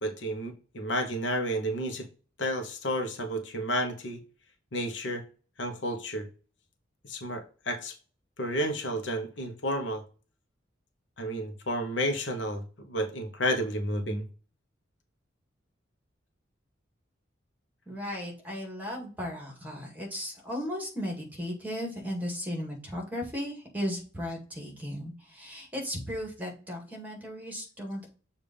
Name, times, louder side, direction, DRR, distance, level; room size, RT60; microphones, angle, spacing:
voice 1, 0.0-2.1 2.4-4.2 4.7-5.2 5.6-6.3 7.0-7.9 8.4-10.0 11.2-14.2, equal, 70° left, 5 dB, 1.1 m, -31 dB
voice 2, 17.9-28.1, equal, 10° right, 0 dB, 2.0 m, -36 dB
7.0 x 2.8 x 5.1 m, 0.37 s
head